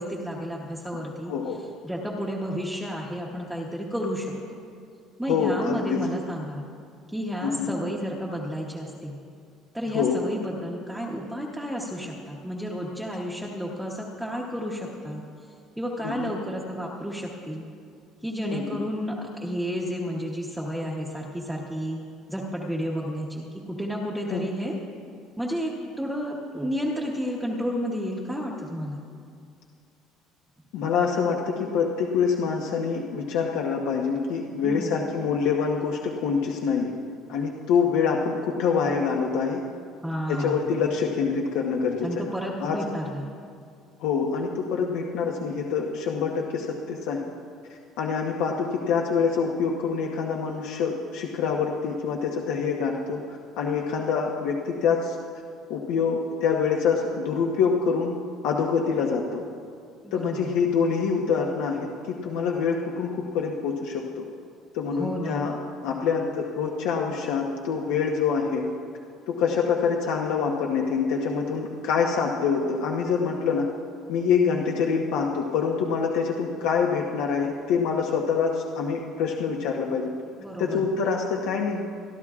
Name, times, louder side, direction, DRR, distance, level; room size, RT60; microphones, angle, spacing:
voice 1, 0.0-1.3 1.8-4.3 5.2-6.6 7.1-9.2 9.7-15.2 15.8-17.6 18.2-22.0 22.3-24.8 25.4-25.7 26.0-29.0 34.6-35.0 40.0-40.6 42.0-43.2 60.0-60.5 64.9-65.4 80.4-80.8, equal, 5° right, -3 dB, 0.9 m, -31 dB
voice 2, 1.3-1.6 5.3-6.0 7.4-7.7 9.9-10.2 16.0-16.3 18.5-18.6 24.3-24.5 30.7-36.9 37.3-39.6 40.3-42.2 42.6-42.8 44.0-47.2 48.0-55.2 55.7-58.1 58.4-59.4 60.1-64.2 64.7-65.5 65.8-68.7 69.3-73.7 74.1-80.1 80.6-81.8, left 6 dB, 80° left, 0 dB, 1.0 m, -25 dB
24.5 x 12.0 x 2.4 m, 2.2 s
cardioid pair, 175°, 0 cm